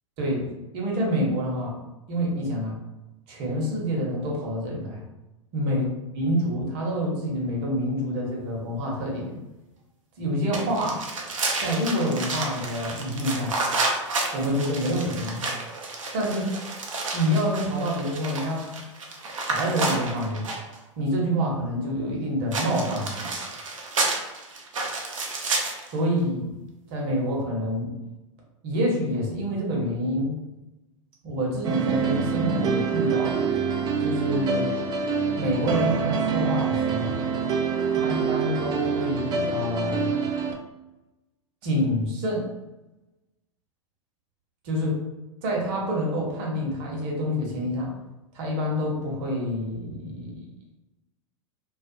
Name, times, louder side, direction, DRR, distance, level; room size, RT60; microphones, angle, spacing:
voice 1, 0.7-1.8 2.1-2.8 3.3-5.0 5.5-5.8 6.2-9.4 10.2-11.0 11.6-13.5 14.3-15.4 16.1-16.5 17.1-18.7 19.5-20.5 21.0-23.3 25.9-26.5 26.9-27.9 28.6-30.4 31.2-33.5 34.0-34.7 35.3-37.2 37.8-40.1 41.6-42.5 44.6-45.0 45.4-47.9 48.3-50.5, equal, 50° right, -2 dB, 0.9 m, -27 dB
sound 1, 10.5-20.8 22.5-25.9, right 3 dB, 75° right, 0.6 m, -30 dB
sound 2, 31.6-40.5, right 6 dB, 25° right, 0.3 m, -26 dB
2.3 x 2.3 x 2.6 m, 1.0 s
figure-of-eight pair, 95°, 17 cm